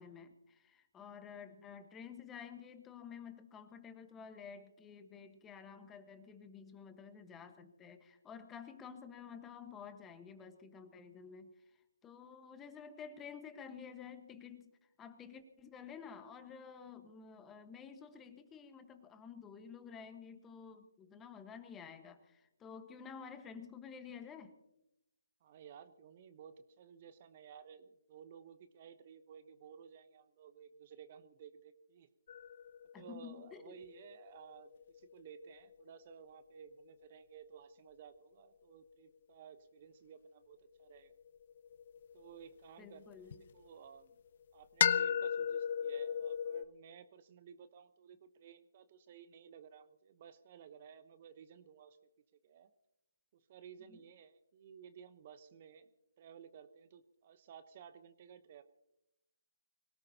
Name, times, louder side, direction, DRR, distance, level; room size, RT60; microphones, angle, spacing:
voice 1, 0.0-11.5 12.0-14.7 15.0-24.5 32.9-33.8 42.8-43.4 53.9-54.0, left 6 dB, 10° left, 8 dB, 1.3 m, -51 dB
voice 2, 25.4-32.1 33.0-41.1 42.1-43.2 43.5-44.2 44.5-52.0 52.4-52.7 53.3-55.9 56.2-58.6, right 8 dB, 35° right, 11 dB, 1.0 m, -56 dB
sound 1, 32.3-36.6 40.9-43.4 44.8-46.7, left 8 dB, 45° left, 0.6 m, -37 dB
25.5 x 17.5 x 2.9 m, 0.88 s
figure-of-eight pair, 145°, 0 cm